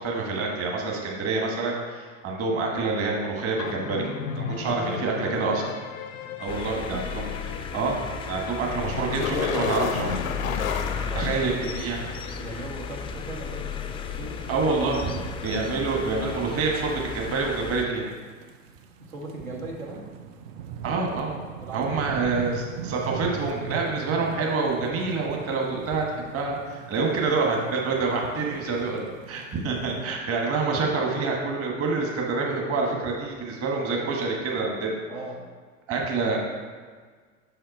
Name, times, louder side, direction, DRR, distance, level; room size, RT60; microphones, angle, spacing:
voice 1, 0.0-4.0 4.3-5.6 6.4-10.1 11.1-12.4 14.5-15.1 15.4-18.1 20.8-21.4 21.7-29.0 29.3-35.0 35.9-36.4, right 4 dB, 35° right, -1 dB, 1.4 m, -27 dB
sound 1, 3.6-12.3, left 7 dB, 80° left, 0.6 m, -33 dB
voice 2, 4.5-5.5 6.3-7.0 10.7-11.7 12.3-15.3 19.0-20.1 21.6-22.1 28.3-28.6 35.1-35.4 35.9-36.4, right 2 dB, 85° right, -3 dB, 1.7 m, -40 dB
sound 2, 6.5-17.8, left 5 dB, 15° left, 0.3 m, -34 dB
sound 3, 15.7-30.0, right 7 dB, 50° right, 0.7 m, -40 dB
6.1 x 5.7 x 4.3 m, 1.5 s
hypercardioid pair, 80°, 40 cm